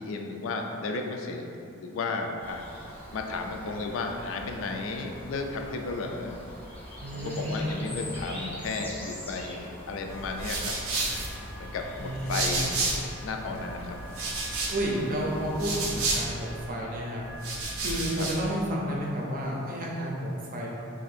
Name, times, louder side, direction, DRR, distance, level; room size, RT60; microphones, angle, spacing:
voice 1, 0.0-1.4 1.8-2.7 3.1-6.4 7.1-10.7 11.6-12.8 13.2-14.0 18.2-18.3, left 3 dB, 70° left, 3 dB, 0.3 m, -33 dB
sound 1, 2.4-16.2, equal, 10° left, 0.5 m, -44 dB
voice 2, 7.0-8.0 12.0-12.8 14.7-17.2 17.8-20.7, equal, 45° right, -3 dB, 0.5 m, -31 dB
sound 2, 10.1-13.2 13.5-16.7 17.2-18.5, right 3 dB, 90° right, 0.6 m, -32 dB
2.7 x 2.6 x 4.1 m, 2.7 s
head